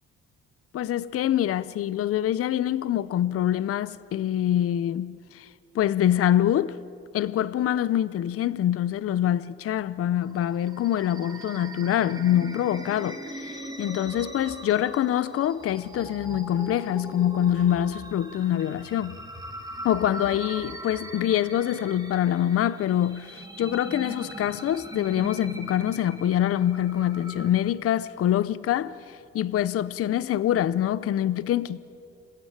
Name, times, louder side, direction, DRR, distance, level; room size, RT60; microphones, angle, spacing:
voice 1, 0.7-5.5 5.7-6.8 7.1-19.2 19.8-31.8, left 11 dB, 50° left, 0.6 m, -25 dB
sound 1, 10.2-27.5, right 1 dB, 15° right, 1.9 m, -40 dB
27.0 x 16.0 x 8.7 m
cardioid pair, 125°, 29 cm